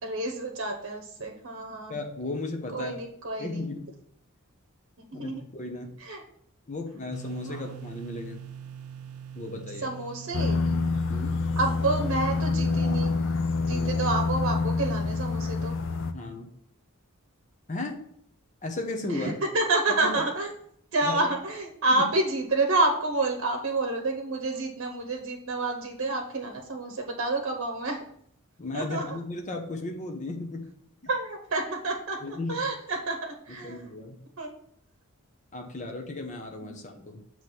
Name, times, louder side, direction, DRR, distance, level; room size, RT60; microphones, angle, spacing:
voice 1, 0.0-2.0 2.7-3.7 5.0-5.4 6.0-6.2 7.4-7.7 9.8-10.6 11.6-13.1 13.7-15.8 19.1-20.5 20.9-28.0 28.7-29.2 31.1-33.8 34.4-34.5 36.6-36.7, right 2 dB, 60° right, 3 dB, 0.9 m, -29 dB
voice 2, 1.9-2.9 3.4-3.9 5.1-5.9 6.7-8.4 9.3-9.9 11.1-11.5 13.7-13.9 16.1-16.5 17.7-18.0 18.6-19.3 20.1-20.2 21.0-21.3 21.9-22.0 28.6-30.7 32.2-32.7 33.6-34.2 35.5-37.2, left 2 dB, 35° left, 3 dB, 1.0 m, -35 dB
sound 1, 7.1-13.9, right 8 dB, 80° right, 0.6 m, -44 dB
sound 2, 10.3-16.1, left 3 dB, 60° left, 0.5 m, -27 dB
7.3 x 3.2 x 5.7 m, 0.68 s
head